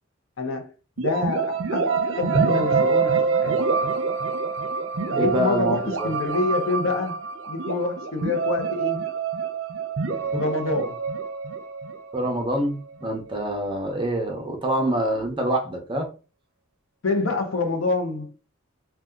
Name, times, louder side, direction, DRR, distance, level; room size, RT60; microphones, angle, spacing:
voice 1, 0.4-3.6 5.1-7.2 7.5-9.0 10.3-11.0 14.8-15.0 17.0-18.3, left 3 dB, 75° left, 0.7 m, -27 dB
sound 1, 1.0-12.7, right 5 dB, 70° right, 0.6 m, -26 dB
voice 2, 5.1-6.1 12.1-16.1, right 1 dB, 25° right, 0.7 m, -26 dB
2.7 x 2.3 x 3.5 m
head